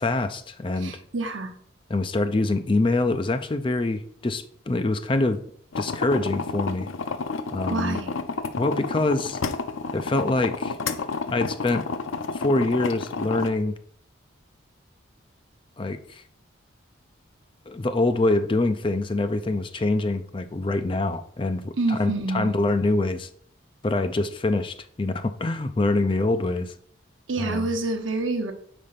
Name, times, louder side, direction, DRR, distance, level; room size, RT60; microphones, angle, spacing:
voice 1, 0.0-1.0 1.9-5.4 5.8-6.9 7.5-8.0 8.6-9.4 9.9-10.8 11.3-11.8 12.3-13.8 15.8-16.2 17.7-23.3 23.8-26.7 27.4-27.7, left 2 dB, 25° left, 9 dB, 0.4 m, -25 dB
voice 2, 0.8-1.5 7.7-8.1 21.8-22.5 27.3-28.5, right 2 dB, 75° right, 5 dB, 0.9 m, -27 dB
sound 1, 5.7-13.5, left 4 dB, 80° left, 0.5 m, -31 dB
5.1 x 4.3 x 5.7 m, 0.62 s
head